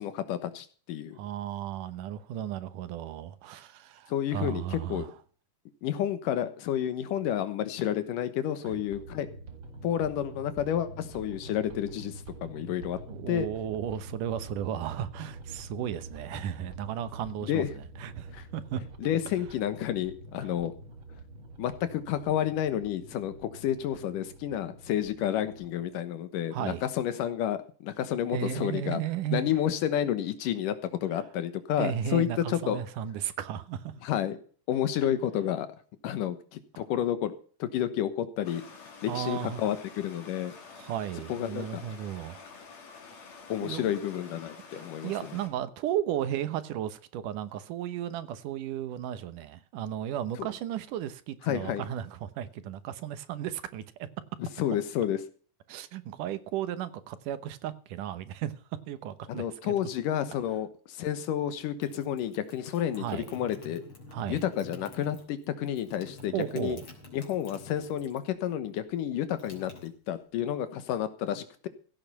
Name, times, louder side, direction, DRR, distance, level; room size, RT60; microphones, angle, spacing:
voice 1, 0.0-1.2 4.1-5.1 5.8-9.3 9.8-13.0 13.3-13.5 17.4-17.7 18.3-18.5 19.0-20.7 21.6-29.0 29.3-30.8 31.0-32.8 34.0-34.4 34.7-35.7 36.0-37.3 37.6-38.6 39.0-40.5 41.3-41.8 43.5-45.4 50.4-50.5 51.4-51.8 54.4-55.2 59.3-63.8 64.3-66.8 67.1-71.7, left 10 dB, 85° left, 2.8 m, -30 dB
voice 2, 1.2-5.1 8.6-8.8 13.1-17.6 18.0-18.8 26.5-26.8 28.3-29.5 31.8-33.9 39.1-39.6 40.8-42.4 43.6-43.9 44.7-54.1 55.7-58.5 58.9-59.7 63.0-63.3 64.1-64.4 66.3-66.9, right 10 dB, 80° right, 2.6 m, -34 dB
sound 1, 8.6-25.8, right 2 dB, 45° right, 2.1 m, -46 dB
Stream, 38.4-45.5, left 5 dB, 55° left, 3.7 m, -49 dB
sound 2, 61.6-68.3 68.6-70.5, left 2 dB, 40° left, 3.9 m, -49 dB
16.0 x 8.3 x 5.7 m
omnidirectional pair, 3.7 m